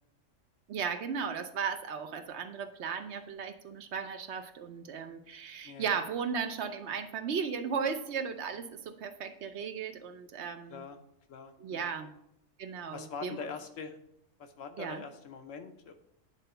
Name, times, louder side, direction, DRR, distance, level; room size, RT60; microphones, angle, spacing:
voice 1, 0.7-10.8 11.6-12.1 12.6-13.5 14.8-15.0, right 6 dB, 65° right, 9 dB, 0.9 m, -36 dB
voice 2, 5.6-6.0 10.7-11.0 11.3-11.9 12.9-14.0 14.4-15.9, left 5 dB, 80° left, 6 dB, 1.2 m, -43 dB
8.9 x 3.9 x 5.6 m, 0.78 s
omnidirectional pair, 1.3 m